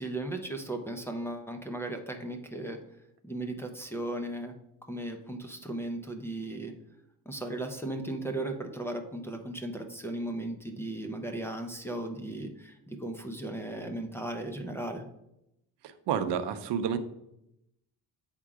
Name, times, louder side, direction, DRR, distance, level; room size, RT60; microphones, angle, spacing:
voice 1, 0.0-2.8 3.2-4.5 4.8-6.7 7.3-15.0, right 1 dB, 5° left, 2 dB, 0.5 m, -36 dB
voice 2, 15.8-17.0, right 8 dB, 80° right, 10 dB, 0.7 m, -30 dB
8.4 x 3.7 x 4.8 m, 0.82 s
cardioid pair, 165°, 41 cm